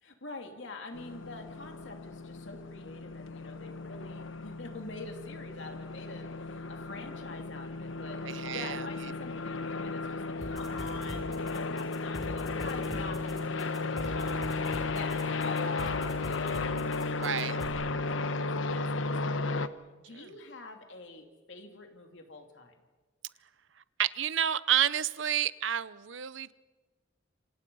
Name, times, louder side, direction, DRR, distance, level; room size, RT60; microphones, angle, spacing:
voice 1, 0.0-14.4 14.8-18.2 18.5-19.5 20.0-22.8, left 3 dB, 70° left, 4 dB, 2.8 m, -45 dB
sound 1, 0.9-19.7, left 3 dB, 90° left, 1.1 m, -34 dB
voice 2, 8.2-8.8 17.2-17.5 20.2-20.3 24.0-26.5, right 10 dB, 75° right, 17 dB, 0.8 m, -30 dB
sound 2, 10.4-17.7, equal, ahead, 6.3 m, -43 dB
27.5 x 26.5 x 5.5 m, 1.3 s
head